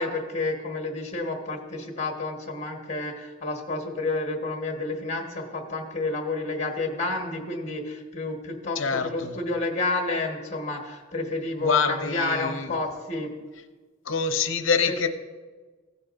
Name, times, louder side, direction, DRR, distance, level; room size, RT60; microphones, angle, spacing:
voice 1, 0.0-13.3 14.9-15.1, left 2 dB, 35° left, 2 dB, 1.3 m, -30 dB
voice 2, 8.8-9.4 11.6-12.7 14.1-15.1, left 5 dB, 70° left, 8 dB, 0.7 m, -25 dB
16.0 x 8.2 x 2.6 m, 1.3 s
head